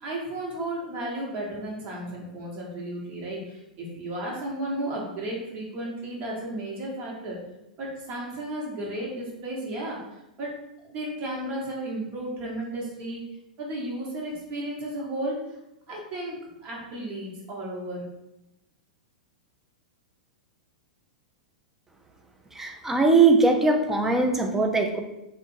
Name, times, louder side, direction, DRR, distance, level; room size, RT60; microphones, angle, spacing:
voice 1, 0.0-7.4 7.8-13.2 13.6-15.4 15.9-18.1, right 1 dB, 35° right, -3 dB, 1.5 m, -34 dB
voice 2, 22.5-25.0, right 3 dB, 10° right, 4 dB, 0.5 m, -21 dB
3.6 x 2.6 x 4.4 m, 0.93 s
figure-of-eight pair, 100°, 4 cm